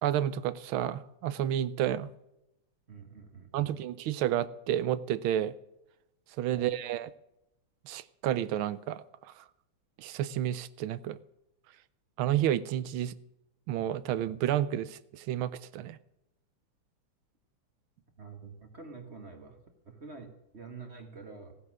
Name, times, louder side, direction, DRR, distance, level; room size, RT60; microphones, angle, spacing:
voice 1, 0.0-2.1 3.5-5.5 6.4-7.1 7.9-9.0 10.0-11.2 12.2-13.1 13.7-16.0, right 11 dB, 85° right, 16 dB, 1.5 m, -30 dB
voice 2, 2.9-3.8 6.6-6.7 18.2-19.6 19.8-21.6, right 4 dB, 35° right, 5 dB, 1.8 m, -47 dB
15.0 x 9.7 x 6.2 m, 0.87 s
omnidirectional pair, 2.2 m